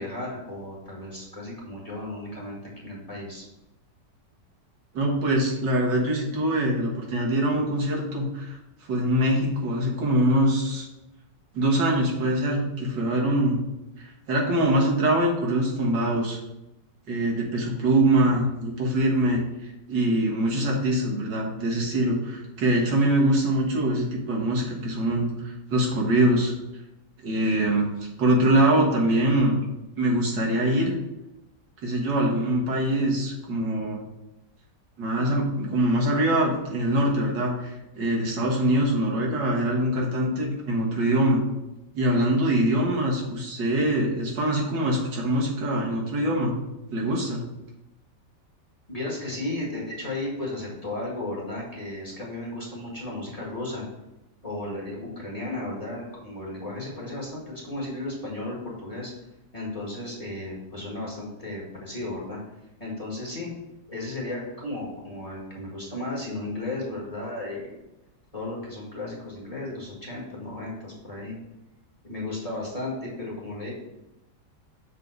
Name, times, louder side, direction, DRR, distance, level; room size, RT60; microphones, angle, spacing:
voice 1, 0.0-2.6 2.8-3.4 48.9-53.8 54.4-59.1 59.5-62.4 62.8-63.5 63.9-67.7 68.3-71.4 72.0-73.7, left 2 dB, 20° left, -4 dB, 1.7 m, -34 dB
voice 2, 4.9-8.6 8.9-10.9 11.5-13.6 14.3-16.4 17.1-19.4 19.9-26.5 27.2-27.9 28.2-29.6 30.0-30.9 31.8-34.0 35.0-37.7 37.9-41.4 41.9-46.5 46.9-47.4, right 1 dB, 75° right, -2 dB, 2.1 m, -23 dB
6.7 x 3.7 x 5.3 m, 0.94 s
omnidirectional pair, 1.9 m